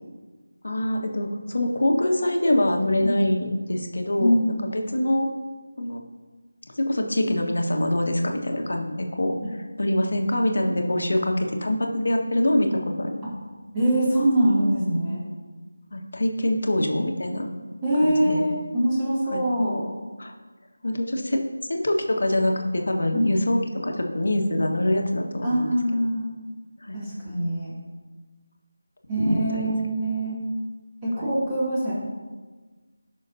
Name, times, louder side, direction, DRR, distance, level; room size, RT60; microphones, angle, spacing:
voice 1, 0.6-5.3 5.8-6.0 6.7-13.3 15.9-17.5 18.0-18.4 19.3-19.4 20.2-20.3 20.8-21.4 21.7-26.0 26.8-27.0 29.3-29.7 31.1-31.3, left 1 dB, 65° left, 2 dB, 1.6 m, -25 dB
voice 2, 4.2-4.7 13.7-15.2 17.8-19.8 23.1-23.3 25.4-26.3 26.9-27.7 29.1-30.4 31.0-31.9, right 1 dB, 15° right, -10 dB, 2.7 m, -23 dB
17.0 x 6.3 x 2.8 m, 1.3 s
figure-of-eight pair, 165°, 0 cm